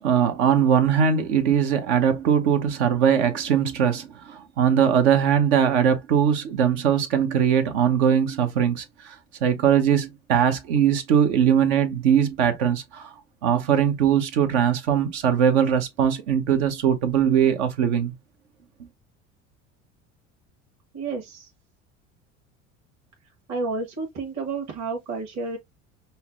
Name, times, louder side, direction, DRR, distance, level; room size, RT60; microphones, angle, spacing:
voice 1, 0.0-9.2 9.4-13.1 13.4-18.1, right 8 dB, 75° right, 0.9 m, -21 dB
voice 2, 20.9-21.5 23.5-25.6, right 3 dB, 50° right, 1.4 m, -30 dB
5.5 x 2.1 x 2.4 m
hypercardioid pair, 75°, 35 cm